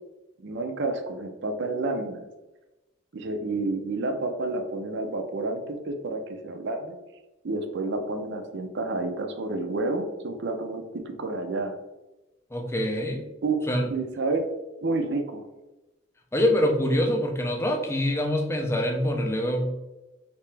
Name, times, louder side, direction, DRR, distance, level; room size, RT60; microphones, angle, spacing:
voice 1, 0.4-2.2 3.1-6.9 7.4-11.8 13.4-13.6 13.9-14.5 14.8-15.5, right 2 dB, 55° right, 5 dB, 0.5 m, -29 dB
voice 2, 12.5-13.3 13.7-13.9 16.3-19.8, left 1 dB, 10° left, 2 dB, 0.4 m, -25 dB
3.3 x 2.9 x 3.2 m, 1.0 s
head